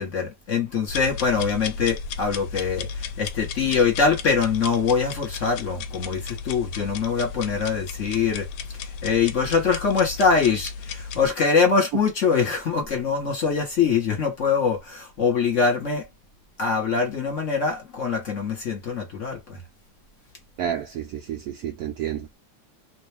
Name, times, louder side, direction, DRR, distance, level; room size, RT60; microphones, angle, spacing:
voice 1, 0.0-8.5 9.0-16.0 16.6-19.6, left 5 dB, 45° left, 1.4 m, -23 dB
sound 1, 0.9-11.3, left 6 dB, 90° left, 1.3 m, -34 dB
voice 2, 20.6-22.4, right 9 dB, 75° right, 0.9 m, -30 dB
3.1 x 2.5 x 3.3 m
omnidirectional pair, 2.0 m